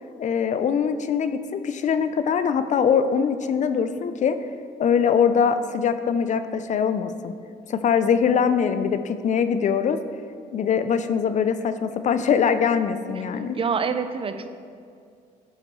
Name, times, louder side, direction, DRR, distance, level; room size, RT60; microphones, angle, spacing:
voice 1, 0.2-4.4 4.8-7.3 7.7-10.0 10.5-13.6, left 7 dB, 50° left, 11 dB, 0.4 m, -22 dB
voice 2, 13.5-14.5, right 5 dB, 35° right, 9 dB, 0.4 m, -26 dB
10.5 x 5.2 x 3.1 m, 2.3 s
cardioid pair, 90°, 16 cm